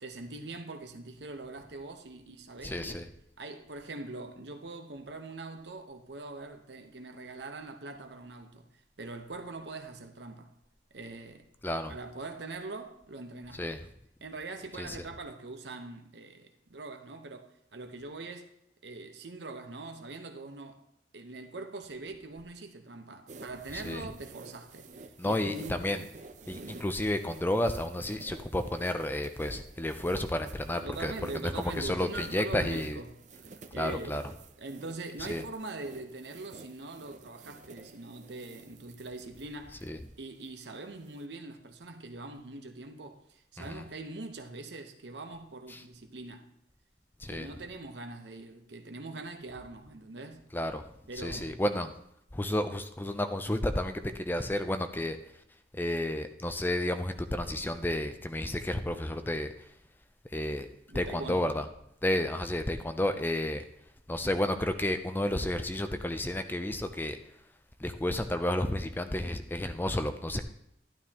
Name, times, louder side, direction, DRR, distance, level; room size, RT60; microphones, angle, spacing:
voice 1, 0.0-3.0 3.4-8.7 9.0-10.5 10.9-11.5 11.9-13.6 14.2-18.5 18.8-20.8 21.1-25.9 30.8-33.2 33.7-34.2 34.6-39.9 40.2-46.5 47.3-50.5 51.1-51.6 60.9-61.5, right 2 dB, 75° right, 1.0 m, -42 dB
voice 2, 2.6-3.1 11.6-11.9 13.6-13.8 14.8-15.0 23.7-24.0 25.2-26.0 26.5-33.0 33.8-34.2 35.2-35.4 39.8-40.0 43.6-43.8 45.7-45.8 47.2-47.5 50.5-50.8 51.2-51.9 52.3-55.2 55.7-59.5 60.3-60.7 60.9-61.6 62.0-63.6 64.1-67.2 67.8-70.4, left 1 dB, 10° left, 0.5 m, -31 dB
sound 1, 23.3-41.2, right 3 dB, 45° right, 0.6 m, -51 dB
12.0 x 11.5 x 2.9 m
head